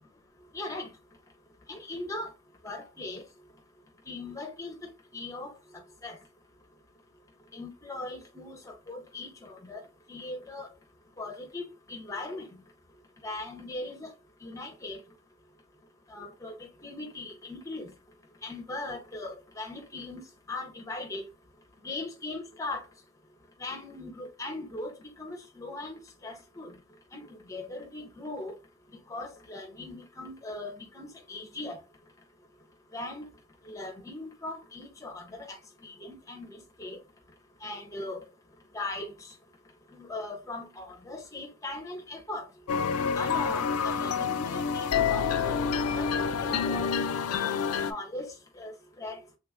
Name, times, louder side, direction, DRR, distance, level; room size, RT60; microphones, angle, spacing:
voice 1, 0.5-0.9 1.7-2.3 2.6-3.2 4.1-6.2 7.5-10.7 11.2-12.6 13.2-14.1 14.4-15.0 16.1-17.9 18.4-20.2 20.5-21.2 21.8-22.8 23.6-26.7 27.1-28.6 29.1-31.8 32.9-33.3 33.7-37.0 37.6-38.2 38.7-39.3 39.9-42.5 43.1-47.0 47.4-48.7 49.0-49.2, left 2 dB, 15° left, 0.6 m, -39 dB
sound 1, 42.7-47.9, left 6 dB, 80° left, 0.4 m, -28 dB
3.1 x 2.4 x 3.3 m
head